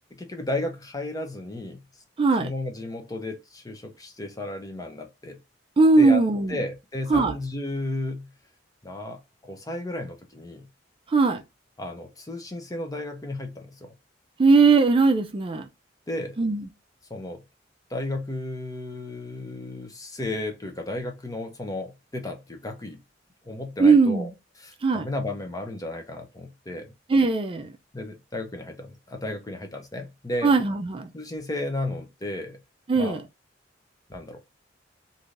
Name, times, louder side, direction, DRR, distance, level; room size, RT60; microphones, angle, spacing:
voice 1, 0.1-1.8 2.4-5.4 6.0-6.2 6.5-8.3 8.8-10.7 11.8-13.9 16.1-16.4 17.1-17.4 17.9-23.0 23.5-24.3 24.6-26.9 27.9-30.5 31.1-32.6 33.0-33.2 34.1-34.4, left 2 dB, 20° left, 0.6 m, -33 dB
voice 2, 2.2-2.5 5.8-6.6 7.1-7.3 11.1-11.4 14.4-15.7 16.4-16.7 23.8-24.3 24.8-25.1 27.1-27.7 30.4-31.1 32.9-33.2, right 4 dB, 30° right, 0.4 m, -19 dB
3.2 x 2.6 x 2.5 m
head